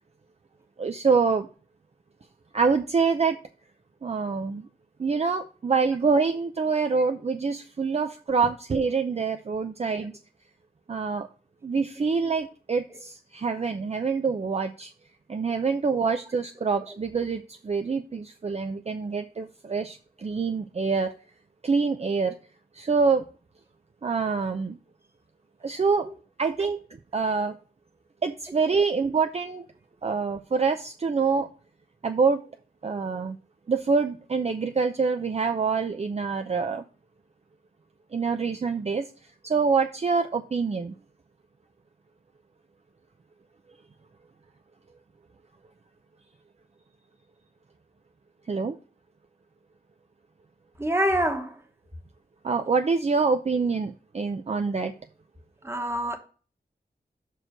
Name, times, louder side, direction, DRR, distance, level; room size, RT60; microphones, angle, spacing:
voice 1, 0.8-1.5 2.5-3.4 4.0-4.7 5.0-10.1 10.9-11.3 11.6-14.9 15.3-21.1 21.6-22.4 22.7-23.2 24.0-24.8 25.6-26.1 26.4-26.8 27.1-27.6 28.2-29.6 30.0-31.5 32.0-32.4 32.8-33.4 33.7-36.8 38.1-39.1 39.4-40.9 48.5-48.8 52.4-54.9, right 5 dB, 40° right, 0.5 m, -26 dB
voice 2, 50.8-51.6 55.6-56.2, equal, 15° right, 1.2 m, -26 dB
6.1 x 4.6 x 6.5 m
wide cardioid pair, 110°, 17 cm